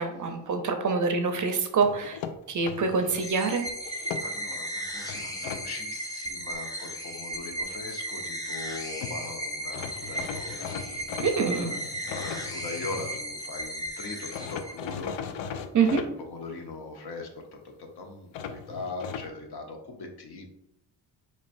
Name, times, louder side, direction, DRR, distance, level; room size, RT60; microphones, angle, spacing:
voice 1, 0.0-2.2 2.5-3.6 11.2-11.7 15.7-16.0, right 5 dB, 40° right, 6 dB, 0.6 m, -25 dB
sound 1, 1.8-3.3 3.8-4.6 5.1-5.6 8.7-8.8 9.0-9.2 9.7-13.2 14.3-16.1 18.3-19.3, left 7 dB, 70° left, 0.5 m, -38 dB
sound 2, 3.2-15.1, right 1 dB, 10° left, 0.7 m, -36 dB
voice 2, 4.2-10.8 11.2-20.5, left 3 dB, 55° left, 2 dB, 1.0 m, -41 dB
4.3 x 3.1 x 2.5 m, 0.80 s
supercardioid pair, 70°, 46 cm